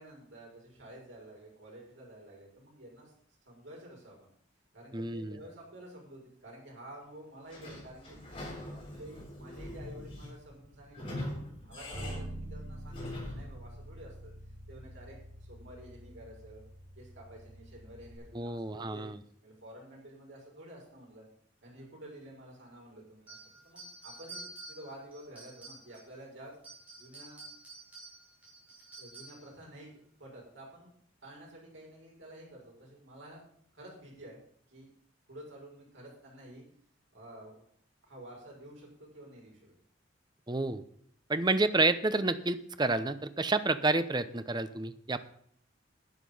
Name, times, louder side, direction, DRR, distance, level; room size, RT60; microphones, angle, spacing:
voice 1, 0.0-3.1 3.4-4.2 4.7-8.2 8.7-14.3 14.7-16.6 16.9-19.1 19.4-21.3 21.6-26.6 27.0-27.4 29.0-30.9 31.2-33.4 33.7-34.4 34.7-34.9 35.3-36.6 37.1-37.6 38.0-39.7, right 1 dB, 75° right, -2 dB, 6.3 m, -50 dB
voice 2, 4.9-5.4 18.3-19.2 40.5-40.8 41.3-45.2, right 3 dB, 20° right, 12 dB, 0.7 m, -29 dB
Sliding door / Squeak, 7.5-13.6, left 1 dB, 30° left, 6.2 m, -43 dB
Bass guitar, 11.9-18.2, right 1 dB, 60° right, 6.8 m, -46 dB
sound 1, 23.3-26.2 26.5-29.5, right 2 dB, 5° right, 6.0 m, -49 dB
11.0 x 9.8 x 5.5 m, 0.64 s
head